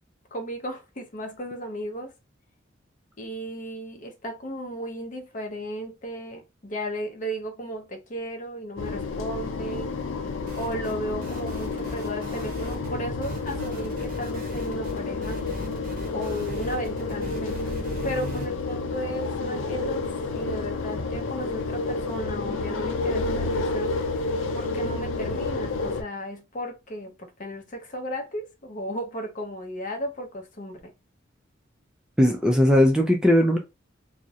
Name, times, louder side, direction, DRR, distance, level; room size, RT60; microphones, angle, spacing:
voice 1, 0.3-2.1 3.2-10.0 10.6-15.4 16.1-17.6 18.0-20.1 20.3-24.0 24.5-30.9, equal, 40° left, 0.6 m, -35 dB
sound 1, 8.8-26.0, left 3 dB, 85° left, 0.5 m, -30 dB
sound 2, 10.5-11.0 11.2-12.9 13.2-18.5, equal, 45° right, 0.7 m, -39 dB
voice 2, 32.2-33.6, equal, 5° right, 0.3 m, -18 dB
2.4 x 2.0 x 2.7 m
head